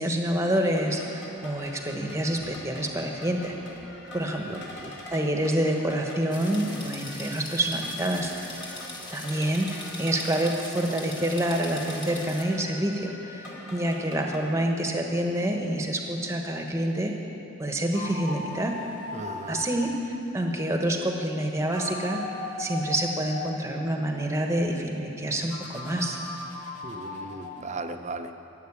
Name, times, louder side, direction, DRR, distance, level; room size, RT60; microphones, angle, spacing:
voice 1, 0.0-3.5 4.1-4.8 5.1-8.3 9.1-13.5 13.7-17.2 17.6-18.8 19.5-22.2 22.6-26.2, right 1 dB, 15° right, 2 dB, 1.2 m, -27 dB
sound 1, 0.7-14.4, left 1 dB, 50° left, 2.7 m, -44 dB
voice 2, 4.5-4.9 19.1-19.6 26.8-28.3, right 2 dB, 30° right, 7 dB, 0.6 m, -37 dB
sound 2, 6.3-12.4, left 2 dB, 20° left, 1.5 m, -41 dB
sound 3, 17.8-19.9 21.5-23.5 25.5-27.6, left 3 dB, 85° left, 1.9 m, -37 dB
15.0 x 8.0 x 9.7 m, 3.0 s
head